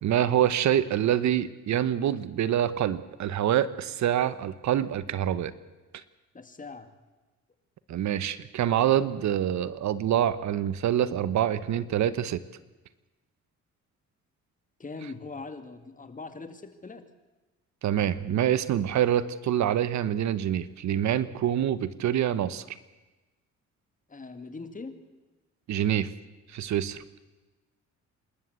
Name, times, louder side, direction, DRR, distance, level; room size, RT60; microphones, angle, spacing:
voice 1, 0.0-5.5 7.9-12.4 17.8-22.8 25.7-26.1 26.5-27.0, right 10 dB, 70° right, 15 dB, 1.0 m, -26 dB
voice 2, 6.3-6.9 14.8-17.0 24.1-24.9, left 3 dB, 25° left, 8 dB, 2.2 m, -41 dB
27.5 x 13.0 x 8.1 m, 1.2 s
cardioid pair, 90°, 30 cm